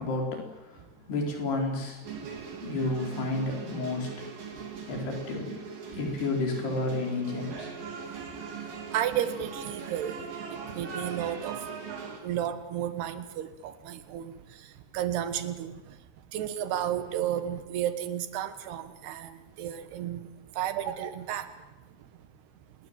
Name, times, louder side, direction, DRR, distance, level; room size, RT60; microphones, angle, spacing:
voice 1, 0.0-2.0 2.6-4.1 4.9-5.6 5.9-7.7, left 2 dB, 90° left, 1 dB, 6.6 m, -31 dB
sound 1, 2.0-12.2, right 5 dB, 60° right, 5.1 m, -40 dB
voice 2, 8.9-10.2 10.5-11.7 12.2-16.0 16.3-21.5, right 10 dB, 85° right, 11 dB, 3.6 m, -33 dB
27.5 x 20.5 x 9.1 m, 1.1 s
omnidirectional pair, 4.5 m